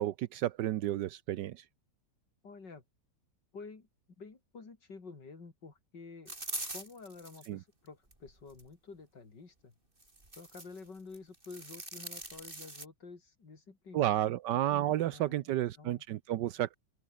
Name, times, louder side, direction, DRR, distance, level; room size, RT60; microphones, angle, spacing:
voice 1, 0.0-1.6 7.5-7.6 13.9-16.7, right 13 dB, 80° right, 1.3 m, -31 dB
voice 2, 2.4-2.8 3.5-3.9 4.2-6.3 6.7-9.7 10.4-14.1 14.9-16.0, left 4 dB, 80° left, 4.2 m, -50 dB
sound 1, 6.3-7.5 8.1-8.7 10.0-10.8 11.1-12.9, right 2 dB, 30° right, 5.0 m, -43 dB
open air
omnidirectional pair, 1.9 m